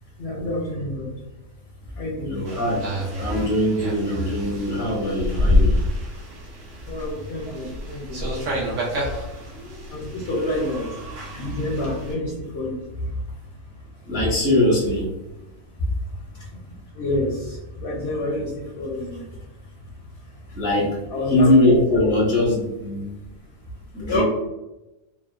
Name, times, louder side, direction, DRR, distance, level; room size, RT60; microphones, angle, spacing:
voice 1, 0.2-1.1 2.0-2.4 6.9-8.2 9.9-10.8 11.3-12.8 17.0-18.5 18.7-19.3 21.1-21.5 24.0-24.2, left 1 dB, 65° left, -3 dB, 0.7 m, -28 dB
voice 2, 2.2-2.9 3.2-5.8 10.2-10.5 14.0-15.1 20.5-21.0 21.3-23.1 23.9-24.2, left 1 dB, 5° right, -5 dB, 0.4 m, -21 dB
sound 1, 2.5-12.1, left 1 dB, 70° right, 1.0 m, -27 dB
2.8 x 2.1 x 2.3 m, 0.97 s
omnidirectional pair, 1.4 m